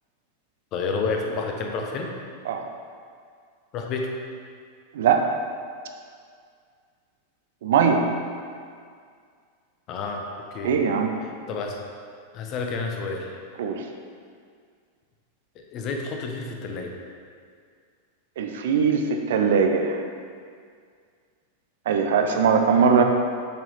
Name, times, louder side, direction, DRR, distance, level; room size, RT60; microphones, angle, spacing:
voice 1, 0.7-2.1 3.7-4.1 9.9-10.2 10.5-10.7 11.5-11.8 12.3-13.3 15.5-16.9, left 4 dB, 35° left, 2 dB, 1.0 m, -29 dB
voice 2, 7.6-8.0 10.6-11.1 13.6-13.8 18.4-20.0 21.9-23.0, right 6 dB, 60° right, 4 dB, 0.7 m, -20 dB
8.6 x 6.3 x 3.5 m, 2.1 s
figure-of-eight pair, 90°, 0 cm